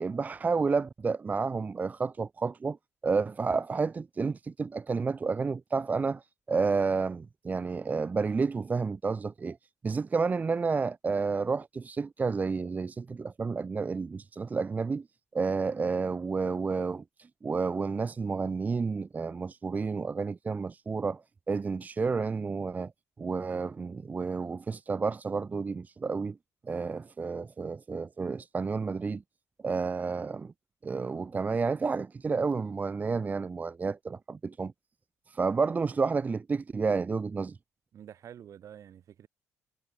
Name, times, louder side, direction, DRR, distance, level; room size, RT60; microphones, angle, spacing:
voice 1, 0.0-2.8 3.0-6.2 6.5-9.6 9.8-15.0 15.3-17.0 17.4-21.2 21.5-22.9 23.2-26.4 26.7-29.2 29.6-30.5 30.8-34.7 35.3-37.6, right 4 dB, 25° right, 0.6 m, -30 dB
voice 2, 37.9-39.3, right 9 dB, 60° right, 4.3 m, -48 dB
cardioid pair, 100°, 6 cm